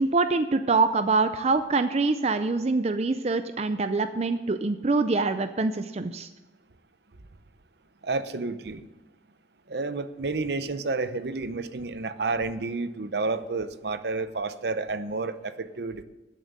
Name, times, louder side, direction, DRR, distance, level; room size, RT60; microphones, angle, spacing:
voice 1, 0.0-6.3, right 3 dB, 35° right, 10 dB, 0.5 m, -25 dB
voice 2, 8.0-8.8 9.7-16.0, right 3 dB, 65° right, 12 dB, 0.7 m, -30 dB
13.5 x 7.6 x 6.5 m, 1.1 s
head